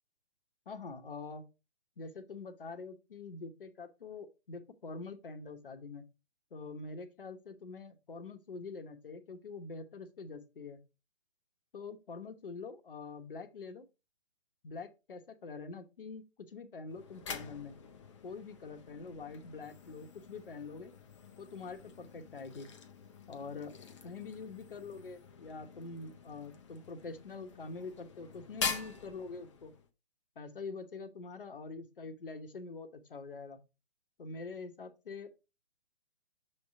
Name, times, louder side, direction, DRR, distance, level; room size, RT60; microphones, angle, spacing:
voice 1, 0.7-1.5 2.0-6.0 6.5-10.8 11.7-13.8 14.6-17.7 18.2-20.9 21.4-22.7 23.3-23.8 24.0-29.7 30.4-33.6 34.2-35.4, left 4 dB, 55° left, 8 dB, 1.1 m, -45 dB
sound 1, 16.9-29.9, left 6 dB, 30° left, 0.8 m, -45 dB
6.9 x 3.3 x 4.8 m, 0.27 s
figure-of-eight pair, 135°, 32 cm